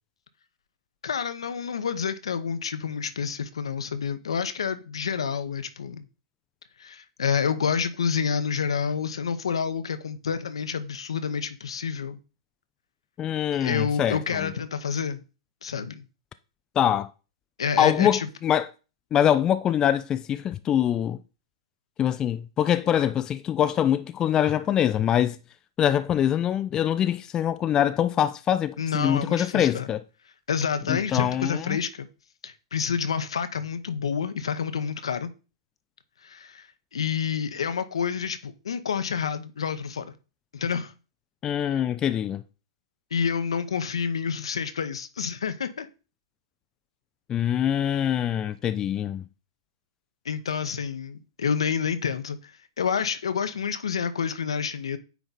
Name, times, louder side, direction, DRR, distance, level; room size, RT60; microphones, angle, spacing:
voice 1, 1.0-6.1 6.8-12.2 13.5-15.2 15.6-16.0 17.6-18.3 28.8-29.9 30.5-32.1 32.4-35.3 36.2-36.7 36.9-40.1 40.5-40.9 43.1-45.9 50.2-52.5 52.8-55.0, left 6 dB, 75° left, 0.9 m, -28 dB
voice 2, 13.2-14.5 16.8-17.1 17.8-18.7 19.1-21.2 22.0-25.4 25.8-30.0 30.9-31.8 41.4-42.4 47.3-49.2, left 10 dB, 25° left, 0.4 m, -24 dB
9.2 x 3.4 x 4.1 m
hypercardioid pair, 110°, 3 cm